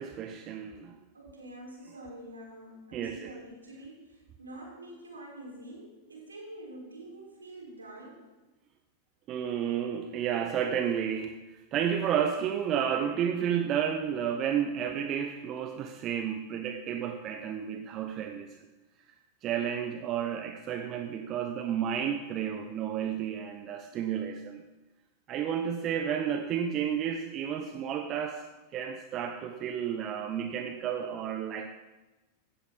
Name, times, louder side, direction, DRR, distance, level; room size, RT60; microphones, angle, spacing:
voice 1, 0.0-1.0 2.9-3.3 9.3-18.6 19.4-24.6 25.3-28.5 28.7-31.7, right 8 dB, 35° right, 7 dB, 0.9 m, -31 dB
voice 2, 1.1-8.3, right 1 dB, 75° right, -2 dB, 5.3 m, -46 dB
16.5 x 13.5 x 4.2 m, 1.1 s
figure-of-eight pair, 90°, 0 cm